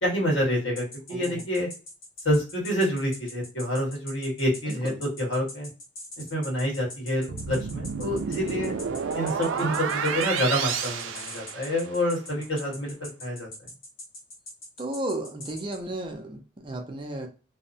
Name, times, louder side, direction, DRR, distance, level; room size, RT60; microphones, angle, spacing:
voice 1, 0.0-1.7 2.2-5.7 6.3-8.7 9.1-13.5, equal, 85° left, 1.4 m, -27 dB
sound 1, 0.8-15.8, left 1 dB, 45° left, 1.0 m, -42 dB
voice 2, 1.1-1.4 4.7-5.0 9.5-9.8 12.7-12.8 14.8-17.3, right 1 dB, 25° right, 0.4 m, -34 dB
sound 2, 7.3-12.0, right 6 dB, 90° right, 0.4 m, -30 dB
2.7 x 2.1 x 2.6 m
head